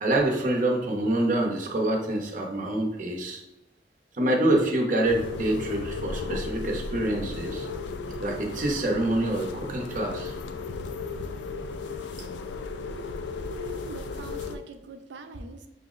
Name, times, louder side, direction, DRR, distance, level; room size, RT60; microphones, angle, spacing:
voice 1, 0.0-3.4 4.2-7.7 8.2-10.3, right 1 dB, 50° right, 0 dB, 0.7 m, -26 dB
sound 1, 5.0-14.6, left 4 dB, 80° left, 0.3 m, -35 dB
voice 2, 13.5-15.7, right 3 dB, 85° right, 7 dB, 0.4 m, -43 dB
5.6 x 2.0 x 3.7 m, 0.92 s
head